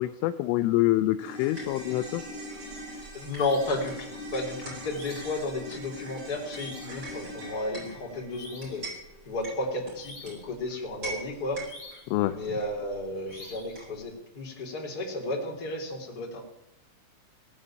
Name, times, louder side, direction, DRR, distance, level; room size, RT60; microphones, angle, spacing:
voice 1, 0.0-2.2 12.1-12.4, left 15 dB, 80° left, 10 dB, 3.1 m, -26 dB
sound 1, 1.2-9.7 10.0-10.1, equal, 55° right, 6.3 m, -43 dB
sound 2, 1.5-14.1, right 2 dB, 15° right, 8.3 m, -46 dB
voice 2, 3.1-8.8 9.2-11.6 12.3-16.4, left 2 dB, 25° left, 0 dB, 2.9 m, -33 dB
sound 3, 3.3-3.9 4.9-5.5 6.5-7.0 8.3-8.9 10.0-10.5 11.6-12.2 13.3-13.8, left 2 dB, 45° left, 6.5 m, -47 dB
17.5 x 9.4 x 8.8 m, 0.83 s
omnidirectional pair, 6.0 m